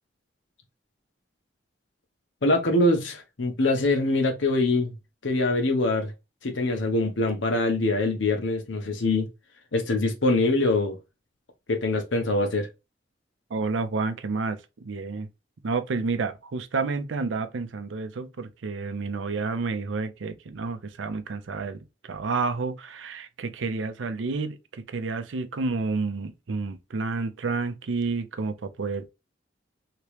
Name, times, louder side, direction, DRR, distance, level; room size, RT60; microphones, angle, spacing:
voice 1, 2.4-4.9 5.2-6.1 6.4-9.3 9.7-11.0 11.7-12.7, left 2 dB, 85° left, 0.9 m, -24 dB
voice 2, 13.5-15.3 15.6-29.1, right 4 dB, 85° right, 0.5 m, -30 dB
2.9 x 2.9 x 3.2 m
head